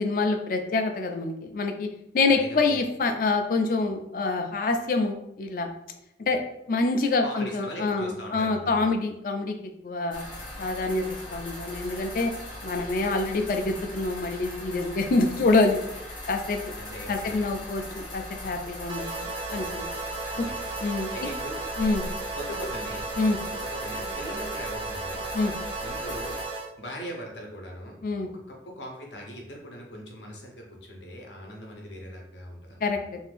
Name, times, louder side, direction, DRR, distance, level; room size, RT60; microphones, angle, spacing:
voice 1, 0.0-1.9 2.1-5.7 6.3-6.4 6.7-9.6 9.8-10.2 10.6-11.0 11.3-12.3 12.6-15.8 16.3-16.6 17.1-19.8 20.4-20.5 20.8-21.3 21.8-22.0 23.2-23.4 25.3-25.5 28.0-28.3 32.8-33.2, left 3 dB, 50° left, 5 dB, 0.4 m, -26 dB
voice 2, 2.3-2.7 7.2-8.9 16.8-17.4 20.3-20.7 21.1-21.6 22.4-23.1 23.5-25.2 25.8-26.4 26.8-28.0 28.5-32.9, equal, 80° left, 0 dB, 0.8 m, -40 dB
sound 1, 10.1-26.5, left 1 dB, 25° left, 0.8 m, -39 dB
sound 2, 18.9-26.7, right 3 dB, 30° right, 0.4 m, -35 dB
2.6 x 2.5 x 3.4 m, 0.83 s
head